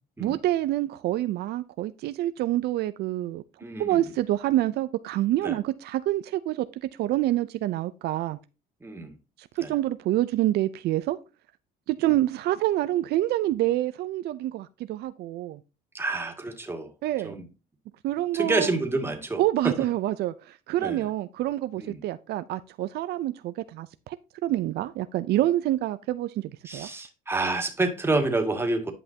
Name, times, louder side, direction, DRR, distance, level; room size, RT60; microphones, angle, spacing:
voice 1, 0.2-3.4 3.8-8.4 9.4-11.2 11.9-15.6 17.0-17.3 18.0-18.7 19.4-24.2 24.4-26.9, right 14 dB, 75° right, 0.6 m, -27 dB
voice 2, 3.6-4.0 5.4-5.6 8.8-9.1 9.6-9.7 15.9-16.9 17.2-17.4 18.3-19.8 20.8-21.1 21.8-22.0 26.6-28.9, right 2 dB, 15° right, 2.2 m, -28 dB
10.5 x 5.6 x 2.8 m
cardioid pair, 110°, 17 cm